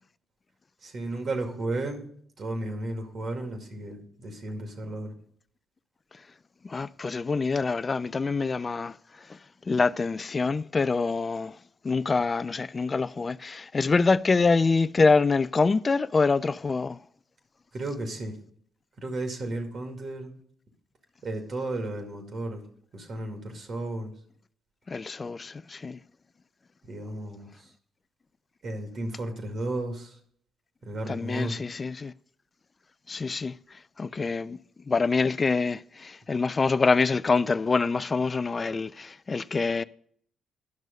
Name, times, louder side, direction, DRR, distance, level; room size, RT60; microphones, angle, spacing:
voice 1, 0.8-2.0 2.4-5.1 17.7-18.4 19.0-20.3 21.2-22.6 22.9-24.1 26.8-27.7 28.6-30.2 30.8-31.6, right 2 dB, 55° right, 2.2 m, -33 dB
voice 2, 6.6-8.9 9.7-11.5 11.8-17.0 24.9-26.0 31.1-32.1 33.1-33.6 34.0-34.6 34.9-39.8, left 4 dB, 35° left, 0.3 m, -25 dB
10.5 x 6.2 x 5.2 m
hypercardioid pair, 50°, 0 cm